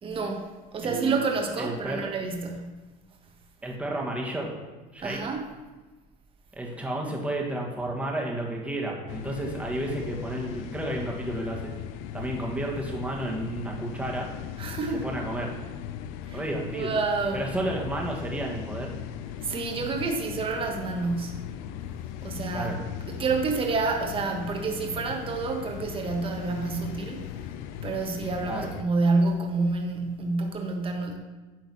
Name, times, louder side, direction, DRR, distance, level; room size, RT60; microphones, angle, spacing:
voice 1, 0.0-2.8 5.0-5.5 14.6-15.1 16.3-16.4 16.7-17.5 19.4-21.5 22.2-22.7 23.1-27.2 27.8-31.2, right 3 dB, 30° right, 2 dB, 1.3 m, -28 dB
voice 2, 0.8-1.3 1.6-2.1 3.6-4.6 4.9-5.2 6.5-11.7 12.1-14.3 15.0-15.5 16.3-16.9 17.3-18.9 22.5-22.8 28.5-28.7, right 1 dB, 5° right, -1 dB, 1.7 m, -32 dB
sound 1, 9.1-28.8, left 10 dB, 85° left, 0.5 m, -38 dB
9.5 x 3.9 x 6.2 m, 1.2 s
cardioid pair, 120°, 18 cm